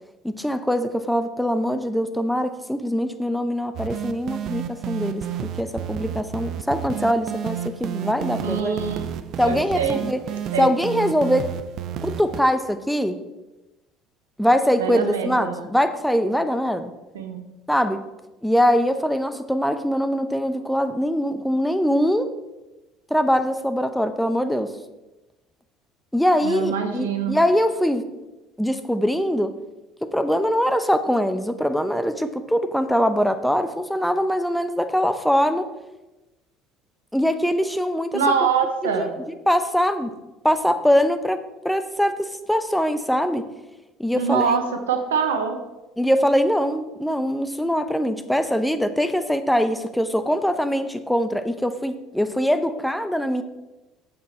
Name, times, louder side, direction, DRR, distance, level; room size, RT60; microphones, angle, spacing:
voice 1, 0.2-5.2 5.6-8.8 9.4-10.2 10.6-11.5 12.0-13.2 14.4-16.9 17.7-18.0 18.4-22.3 23.1-24.8 26.1-28.0 28.6-29.5 30.0-35.7 37.1-38.5 38.8-40.1 40.4-43.5 44.0-44.6 46.0-53.4, equal, ahead, 9 dB, 0.9 m, -22 dB
sound 1, 3.7-12.4, right 9 dB, 55° right, 0.5 m, -31 dB
voice 2, 8.4-9.1 9.4-10.0 10.5-10.7 14.8-15.6 17.1-17.5 26.4-27.4 38.1-39.1 44.1-45.6, right 6 dB, 80° right, 6 dB, 1.0 m, -24 dB
8.7 x 7.0 x 4.5 m, 1.0 s
figure-of-eight pair, 60°, 0 cm